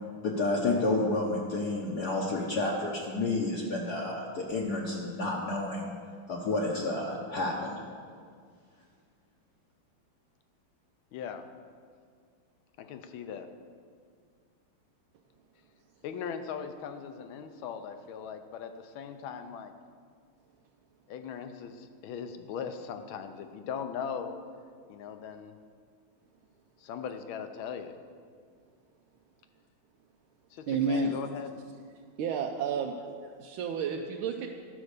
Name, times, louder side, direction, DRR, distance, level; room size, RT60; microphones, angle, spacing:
voice 1, 0.2-5.9 6.3-7.8, left 2 dB, 60° left, -1 dB, 1.2 m, -30 dB
voice 2, 11.1-11.4 12.8-13.5 16.0-19.7 21.1-24.3 24.9-25.6 26.8-27.9 30.5-31.5, left 7 dB, 80° left, 8 dB, 1.5 m, -39 dB
voice 3, 30.7-31.2 32.2-33.0 33.2-34.5, right 5 dB, 85° right, 2 dB, 1.4 m, -30 dB
11.0 x 5.3 x 6.6 m, 2.1 s
omnidirectional pair, 2.3 m